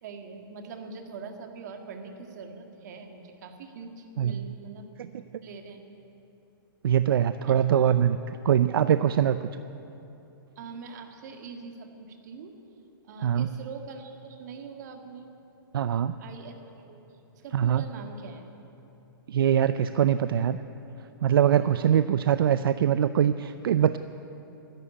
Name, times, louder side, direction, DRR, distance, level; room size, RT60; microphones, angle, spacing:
voice 1, 0.0-4.9 5.4-5.8 7.5-8.0 10.6-12.6 13.0-15.3 16.2-17.0 17.3-18.5 21.5-21.9, right 5 dB, 50° right, 4 dB, 1.8 m, -43 dB
voice 2, 6.8-8.2 8.4-9.5 13.2-13.5 15.7-16.1 17.5-17.8 19.3-20.6 21.2-24.0, right 9 dB, 75° right, 12 dB, 0.5 m, -23 dB
13.0 x 11.0 x 10.0 m, 2.9 s
hypercardioid pair, 160°, 12 cm